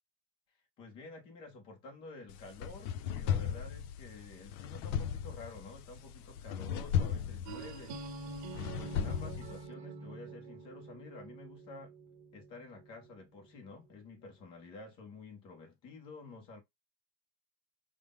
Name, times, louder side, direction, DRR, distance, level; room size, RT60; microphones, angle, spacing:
voice 1, 0.8-8.0 8.6-11.9 12.3-16.6, left 3 dB, 10° left, 0.3 m, -50 dB
sound 1, 2.3-9.7, left 8 dB, 60° left, 0.6 m, -36 dB
sound 2, 7.5-13.2, right 4 dB, 45° right, 0.8 m, -46 dB
5.0 x 2.1 x 3.4 m
supercardioid pair, 155°, 49 cm